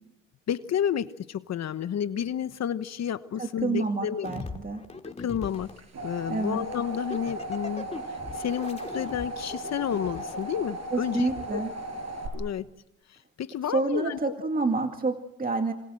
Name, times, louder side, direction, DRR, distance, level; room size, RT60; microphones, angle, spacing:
voice 1, 0.5-4.3 5.2-5.7 6.0-11.6 12.3-12.7 13.1-14.3, left 9 dB, 60° left, 12 dB, 1.1 m, -31 dB
voice 2, 3.4-4.8 6.3-6.6 10.9-11.7 13.7-15.7, right 3 dB, 30° right, 5 dB, 2.2 m, -28 dB
sound 1, 4.2-5.8 6.7-10.5 11.3-11.5, left 3 dB, 20° left, 2.9 m, -40 dB
sound 2, 5.6-12.3, right 2 dB, 60° right, 7.1 m, -37 dB
26.5 x 26.0 x 7.8 m, 0.88 s
cardioid pair, 90°, 30 cm